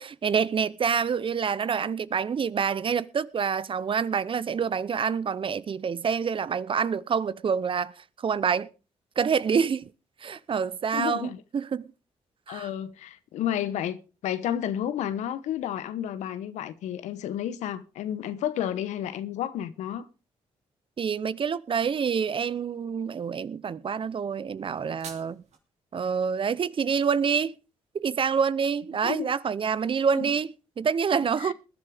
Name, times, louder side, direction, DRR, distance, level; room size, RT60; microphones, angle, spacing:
voice 1, 0.0-8.7 9.2-9.9 10.2-11.9 12.5-12.7 21.0-25.4 25.9-27.5 27.9-31.5, right 6 dB, 45° right, 0.7 m, -27 dB
voice 2, 10.9-11.4 12.5-14.0 14.2-20.1 29.0-29.3 30.1-30.2 31.4-31.5, left 10 dB, 80° left, 1.0 m, -31 dB
sound 1, 24.6-25.6, right 6 dB, 65° right, 2.8 m, -46 dB
20.5 x 10.5 x 3.5 m
supercardioid pair, 55°, 12 cm